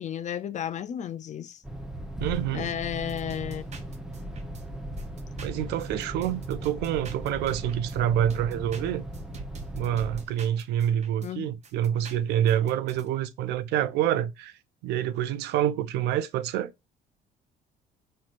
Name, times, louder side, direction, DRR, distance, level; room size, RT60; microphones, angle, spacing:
voice 1, 0.0-1.6 2.5-3.6 11.2-11.5, left 9 dB, 45° left, 0.6 m, -33 dB
sound 1, 1.6-10.3, right 1 dB, 5° right, 1.0 m, -37 dB
voice 2, 2.2-2.7 5.4-9.0 9.7-14.5 14.8-16.7, right 10 dB, 80° right, 0.6 m, -27 dB
sound 2, 3.1-4.6 5.0-8.0 8.3-11.3 11.6-13.1, right 4 dB, 40° right, 1.1 m, -46 dB
5.7 x 3.1 x 2.6 m
cardioid pair, 110°, 17 cm